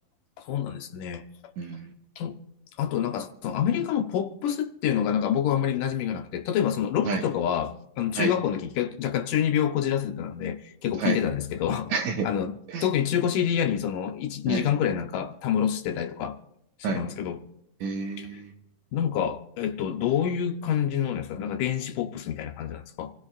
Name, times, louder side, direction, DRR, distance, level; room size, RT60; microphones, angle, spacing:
voice 1, 0.4-1.2 2.2-2.4 2.8-11.9 12.2-12.5 12.8-16.4 16.8-17.4 18.9-23.1, left 9 dB, 75° left, 2.1 m, -27 dB
voice 2, 1.6-1.9 7.0-7.2 8.1-8.3 11.0-11.2 11.9-12.3 12.7-12.9 14.5-14.7 16.8-17.0 17.8-18.5, right 5 dB, 70° right, 2.1 m, -29 dB
27.5 x 16.0 x 2.4 m
omnidirectional pair, 4.0 m